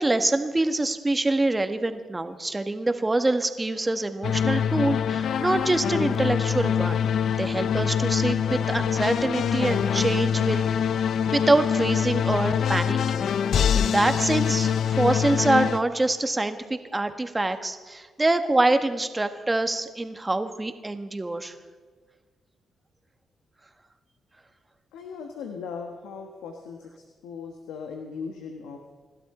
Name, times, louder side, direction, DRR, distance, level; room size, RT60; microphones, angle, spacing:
voice 1, 0.0-7.1 7.4-10.7 11.3-13.3 13.7-21.5, right 2 dB, 20° right, 8 dB, 1.6 m, -25 dB
sound 1, 4.2-15.8, left 8 dB, 70° left, 0.5 m, -24 dB
voice 2, 24.9-28.9, left 5 dB, 85° left, 3 dB, 1.3 m, -38 dB
27.0 x 12.0 x 4.4 m, 1.4 s
supercardioid pair, 55°, 0 cm